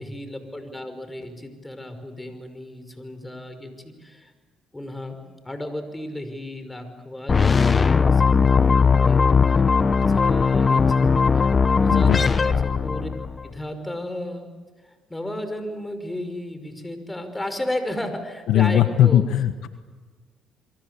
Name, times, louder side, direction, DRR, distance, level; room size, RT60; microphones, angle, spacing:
voice 1, 0.0-4.3 4.7-5.2 5.4-9.6 9.9-11.5 11.8-13.1 13.4-14.5 14.8-19.3, left 1 dB, 15° left, 8 dB, 5.6 m, -34 dB
sound 1, 7.3-13.4, left 5 dB, 35° left, 1.3 m, -18 dB
voice 2, 18.5-19.7, left 11 dB, 75° left, 10 dB, 1.3 m, -18 dB
28.0 x 23.5 x 8.4 m, 1.4 s
supercardioid pair, 65°, 0 cm